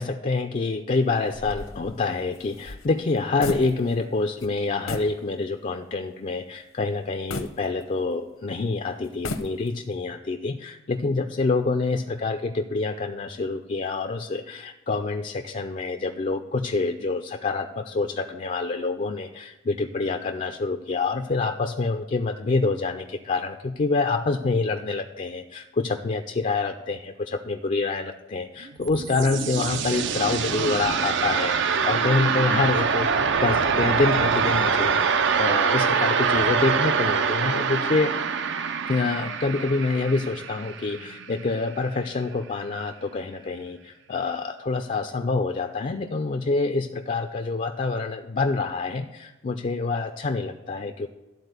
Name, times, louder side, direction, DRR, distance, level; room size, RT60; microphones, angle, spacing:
voice 1, 0.0-33.1 33.4-38.2 38.9-51.1, left 3 dB, 35° left, 6 dB, 0.4 m, -26 dB
sound 1, 1.3-4.1 4.4-4.5 4.9-5.2 5.7-5.8 7.3-8.3 9.0-9.9, left 2 dB, 70° left, 0.8 m, -35 dB
sound 2, 28.6-41.5, right 6 dB, 60° right, 0.5 m, -24 dB
12.5 x 4.2 x 8.1 m, 1.1 s
head